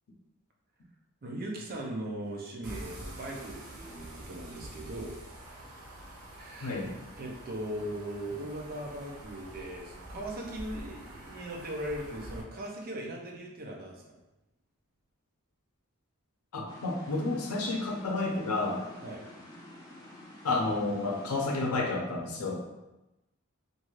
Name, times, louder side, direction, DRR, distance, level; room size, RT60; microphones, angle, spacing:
voice 1, 1.2-5.2 6.3-6.8 7.2-14.2 19.0-19.2, right 1 dB, 45° right, 0 dB, 0.5 m, -39 dB
sound 1, 2.6-12.4, right 1 dB, 90° right, 0.6 m, -46 dB
voice 2, 6.6-6.9 16.5-18.9 20.4-22.7, left 2 dB, 85° left, 1 dB, 0.6 m, -31 dB
sound 2, 16.7-21.7, left 1 dB, 20° left, 0.5 m, -49 dB
2.6 x 2.4 x 3.0 m, 0.96 s
head